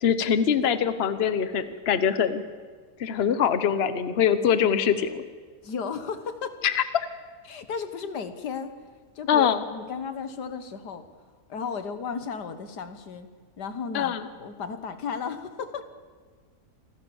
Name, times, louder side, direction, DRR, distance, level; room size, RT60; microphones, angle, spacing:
voice 1, 0.0-2.4 3.0-5.2 6.6-6.8 9.3-9.6 13.9-14.2, left 8 dB, 45° left, 12 dB, 1.1 m, -23 dB
voice 2, 5.6-6.6 7.5-8.7 9.2-11.1 11.5-13.3 13.6-15.8, left 5 dB, 90° left, 10 dB, 2.0 m, -34 dB
26.5 x 15.0 x 7.1 m, 1.5 s
omnidirectional pair, 1.7 m